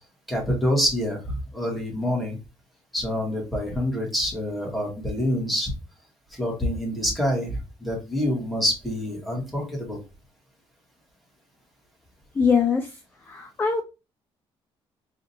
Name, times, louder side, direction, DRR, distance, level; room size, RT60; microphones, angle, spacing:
voice 1, 0.3-2.4 2.9-5.7 6.3-10.0, equal, ahead, -2 dB, 1.8 m, -26 dB
voice 2, 12.3-13.8, left 5 dB, 20° left, 5 dB, 0.5 m, -23 dB
5.0 x 2.8 x 2.8 m, 0.29 s
cardioid pair, 140°, 10 cm